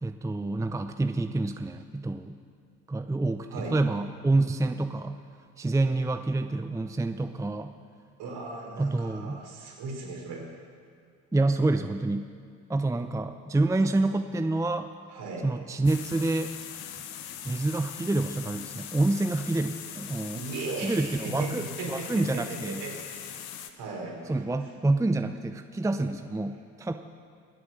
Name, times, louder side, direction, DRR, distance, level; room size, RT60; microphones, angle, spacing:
voice 1, 0.0-2.4 2.9-5.2 5.6-7.7 8.8-9.4 11.3-12.3 12.7-14.9 15.4-16.6 17.4-20.4 20.8-22.8 24.3-26.9, right 2 dB, 5° right, 8 dB, 0.7 m, -27 dB
voice 2, 8.2-10.5 15.1-15.5 20.3-23.4 23.8-24.4, right 3 dB, 60° right, -1 dB, 4.3 m, -37 dB
sound 1, 15.9-23.7, left 10 dB, 60° left, 1.2 m, -41 dB
22.5 x 7.9 x 6.6 m, 2.3 s
hypercardioid pair, 55°, 42 cm